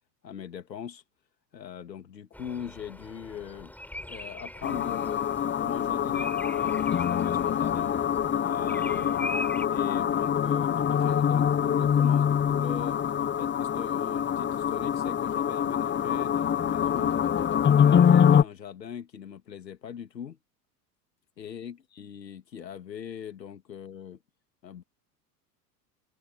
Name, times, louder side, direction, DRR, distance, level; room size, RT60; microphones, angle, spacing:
voice 1, 0.2-1.0 1.5-3.7 4.0-7.9 8.4-9.3 9.7-17.2 17.7-20.4 21.4-24.2 24.6-24.8, left 8 dB, 85° left, 2.5 m, -41 dB
Bird vocalization bird call bird song, 2.3-9.7, left 1 dB, 5° left, 5.6 m, -42 dB
sound 1, 4.6-18.4, left 8 dB, 25° left, 1.1 m, -24 dB
hypercardioid pair, 75°, 49 cm